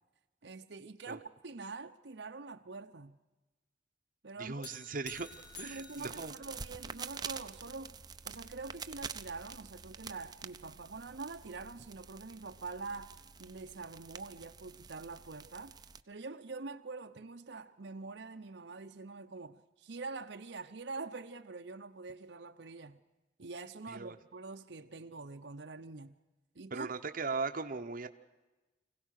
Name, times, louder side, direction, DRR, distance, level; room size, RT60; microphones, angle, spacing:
voice 1, 0.4-3.2 4.2-4.7 5.6-7.9 8.2-15.7 16.1-23.0 23.4-26.2 26.5-26.9, right 3 dB, 80° right, 0.9 m, -45 dB
voice 2, 4.4-5.3 5.6-6.3 23.9-24.2 26.7-28.1, right 4 dB, 50° right, 0.9 m, -38 dB
sound 1, 4.6-7.1, left 4 dB, 70° left, 2.6 m, -52 dB
sound 2, 5.1-16.0, right 5 dB, 25° right, 0.6 m, -48 dB
25.0 x 16.5 x 6.5 m
head